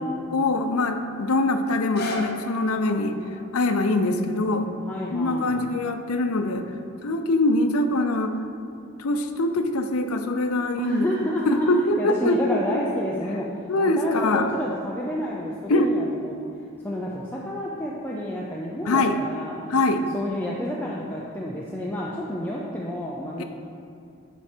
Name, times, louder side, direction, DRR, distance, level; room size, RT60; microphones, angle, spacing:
voice 1, 0.3-3.2 3.5-4.7 5.1-6.6 7.0-8.3 9.0-11.1 11.5-12.8 13.7-14.5 15.7-15.9 18.9-19.2 19.7-20.1 23.4-23.5, left 2 dB, 85° left, 7 dB, 0.6 m, -23 dB
sound 1, 1.9-7.8 8.4-8.5, left 3 dB, 45° left, 0.8 m, -40 dB
voice 2, 4.8-5.7 10.8-11.7 12.0-19.5 20.1-23.4, equal, 10° left, -5 dB, 0.5 m, -30 dB
11.0 x 4.4 x 4.5 m, 2.6 s
head